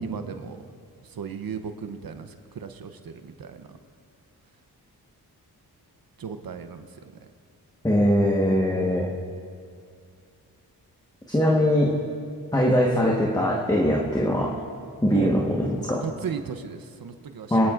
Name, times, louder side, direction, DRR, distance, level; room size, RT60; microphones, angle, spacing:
voice 1, 0.0-0.7 1.0-3.8 6.2-7.0 8.7-9.0 15.1-15.3 16.0-17.7, right 6 dB, 60° right, 8 dB, 0.8 m, -36 dB
voice 2, 7.8-9.1 11.3-12.0 12.5-14.6 15.0-16.0 17.5-17.7, equal, 10° left, -2 dB, 1.3 m, -21 dB
26.0 x 10.5 x 2.5 m, 2.2 s
cardioid pair, 60°, 39 cm